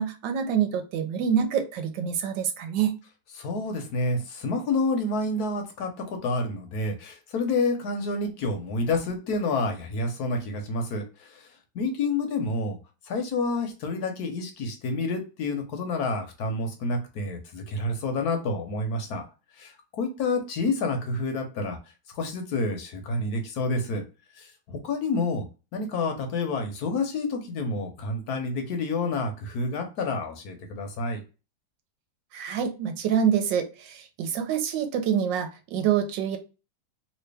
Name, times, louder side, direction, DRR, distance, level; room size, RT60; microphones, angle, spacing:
voice 1, 0.0-3.0 32.3-36.4, right 8 dB, 70° right, 7 dB, 1.3 m, -26 dB
voice 2, 3.4-11.5 11.7-12.8 13.1-19.2 19.6-21.8 22.1-24.0 24.4-25.5 25.7-31.2, left 3 dB, 60° left, 4 dB, 1.2 m, -29 dB
3.2 x 2.9 x 3.3 m, 0.31 s
omnidirectional pair, 2.1 m